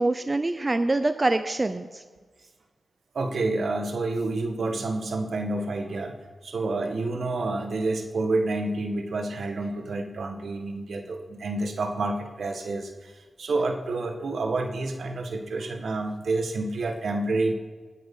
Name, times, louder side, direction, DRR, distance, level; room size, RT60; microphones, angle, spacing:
voice 1, 0.0-2.0, right 2 dB, 30° right, 9 dB, 0.7 m, -25 dB
voice 2, 3.1-6.1 6.4-13.1 13.4-17.5, right 2 dB, 70° right, 4 dB, 1.9 m, -28 dB
19.5 x 8.9 x 5.7 m, 1.4 s
cardioid pair, 65°, 0 cm